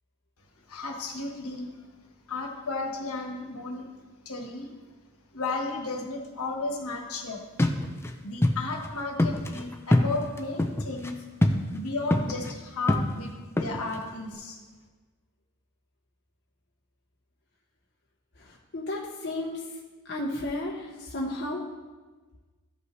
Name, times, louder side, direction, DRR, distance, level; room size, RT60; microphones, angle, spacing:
voice 1, 0.7-1.8 2.3-3.9 4.2-4.7 5.3-7.4 8.2-11.2 11.7-14.6, left 3 dB, 75° left, 1 dB, 1.4 m, -34 dB
sound 1, 7.6-8.1 8.4-8.5 8.8-8.9 9.2-11.1 11.4-11.8 12.1-12.5 12.9-14.1, left 1 dB, 10° left, 0.5 m, -24 dB
voice 2, 18.4-19.7 20.0-21.6, left 1 dB, 50° left, -3 dB, 0.9 m, -33 dB
14.5 x 5.5 x 3.2 m, 1.3 s
head